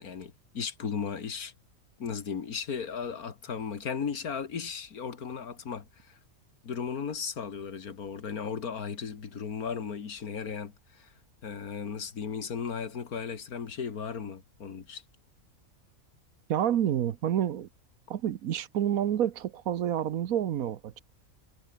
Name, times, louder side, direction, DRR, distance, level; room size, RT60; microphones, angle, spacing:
voice 1, 0.0-1.5 2.0-6.2 6.6-11.1 11.4-15.0, left 6 dB, 85° left, 2.2 m, -36 dB
voice 2, 16.5-17.7 18.1-21.0, right 10 dB, 75° right, 1.3 m, -28 dB
omnidirectional pair, 1.5 m